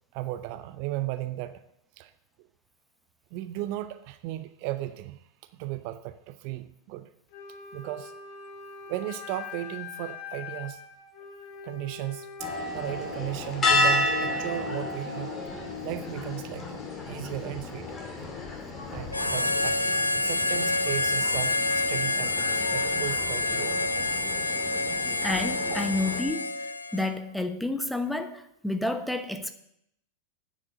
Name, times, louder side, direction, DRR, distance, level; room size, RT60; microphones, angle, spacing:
voice 1, 0.1-1.6 2.0-2.1 3.3-5.3 5.5-7.1 7.7-8.1 8.9-10.8 11.6-15.3 15.8-16.8 17.1-18.0 18.9-19.8 20.1-24.2 25.0-25.1 25.7-25.8, right 15 dB, 45° right, 12 dB, 0.6 m, -35 dB
Wind instrument woodwind instrument, 7.3-13.2, left 6 dB, 45° left, 1.7 m, -43 dB
sound 1, 12.4-26.2, left 2 dB, 20° left, 2.5 m, -32 dB
Harmonica, 19.1-27.2, left 2 dB, 85° left, 0.6 m, -28 dB
voice 2, 25.2-26.6 26.9-29.5, left 2 dB, ahead, 8 dB, 0.9 m, -30 dB
9.6 x 7.5 x 6.5 m, 0.76 s
figure-of-eight pair, 90°, 0 cm